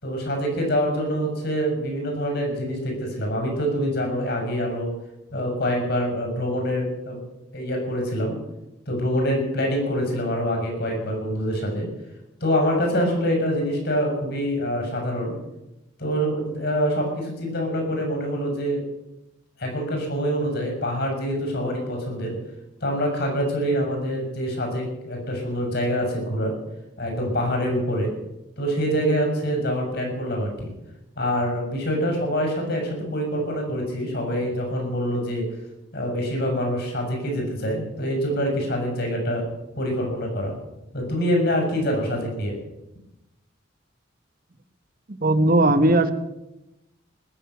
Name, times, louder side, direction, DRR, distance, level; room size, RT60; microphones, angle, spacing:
voice 1, 0.0-4.9 5.3-7.2 7.5-8.4 8.9-11.9 12.4-15.3 16.0-18.8 19.6-22.4 22.8-26.5 27.0-28.1 28.6-30.7 31.2-35.5 35.9-39.4 39.8-40.5 40.9-42.6, equal, 55° left, 2 dB, 6.1 m, -25 dB
voice 2, 45.2-46.1, right 2 dB, 45° right, 10 dB, 1.3 m, -17 dB
20.0 x 7.3 x 9.2 m, 0.93 s
head